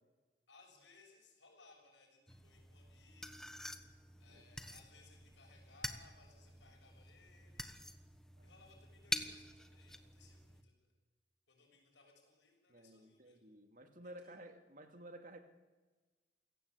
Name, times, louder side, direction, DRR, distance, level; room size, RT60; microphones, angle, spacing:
voice 1, 0.5-3.5 4.2-7.7 8.4-10.9 11.5-13.4 14.0-14.4, left 3 dB, 85° left, 1 dB, 6.9 m, -65 dB
sound 1, 2.3-10.6, left 1 dB, 5° left, 1.3 m, -47 dB
voice 2, 12.7-15.4, right 1 dB, 50° right, 6 dB, 2.5 m, -54 dB
28.5 x 17.0 x 8.4 m, 1.3 s
head